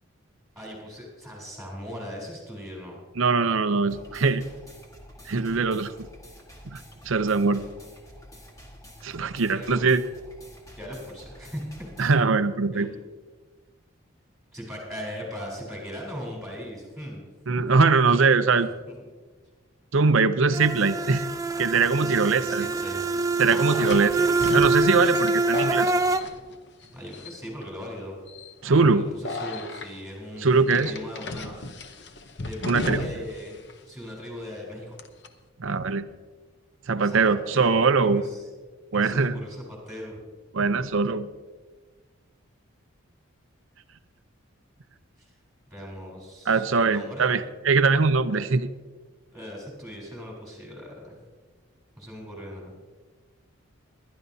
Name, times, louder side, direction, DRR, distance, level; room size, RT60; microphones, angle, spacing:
voice 1, 0.6-3.0 9.5-9.9 10.8-11.6 12.7-12.9 14.5-17.3 18.5-19.0 21.9-23.0 23.5-24.4 26.8-28.2 28.6-31.6 32.4-34.9 37.0-38.4 38.9-40.2 45.2-45.3 45.7-47.5 48.3-48.4 49.3-51.2 52.0-52.7, equal, ahead, -3 dB, 3.6 m, -39 dB
voice 2, 3.2-4.4 5.3-5.9 6.7-6.8 7.1-7.6 9.0-10.0 12.0-12.9 17.5-18.7 19.9-21.2 21.6-22.7 23.4-24.1 24.5-25.9 28.6-29.1 30.4-30.9 32.7-33.0 35.6-36.0 36.9-38.2 38.9-39.4 40.5-41.3 46.5-48.7, right 4 dB, 70° right, 11 dB, 0.6 m, -22 dB
sound 1, 3.9-12.2, equal, 15° left, 1.5 m, -48 dB
sound 2, 20.5-26.2, right 3 dB, 15° right, 0.5 m, -25 dB
sound 3, 22.5-22.6 23.8-26.8 27.1-27.6 28.3-28.5 29.2-29.9 30.7-33.4 33.7-33.8 35.0-35.3, left 2 dB, 55° left, 0.8 m, -34 dB
21.5 x 11.5 x 2.7 m, 1.4 s
head